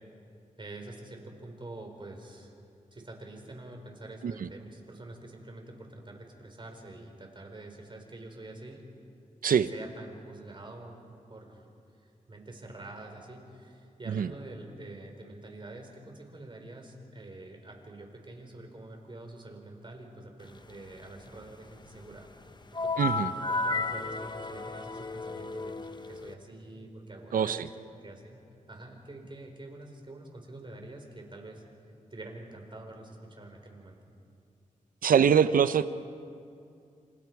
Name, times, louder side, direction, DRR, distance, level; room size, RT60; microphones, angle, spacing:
voice 1, 0.6-2.5 2.9-8.8 9.5-11.7 12.0-22.3 22.8-25.7 26.1-27.7 28.0-28.4 28.7-31.6 32.1-34.1, right 2 dB, 35° right, 2 dB, 4.6 m, -46 dB
sound 1, 22.7-26.3, left 3 dB, 30° left, 1.0 m, -33 dB
voice 2, 23.0-23.3 27.3-27.7 35.0-35.9, right 7 dB, 85° right, 13 dB, 0.7 m, -24 dB
28.0 x 27.0 x 4.8 m, 2.5 s
cardioid pair, 75°, 14 cm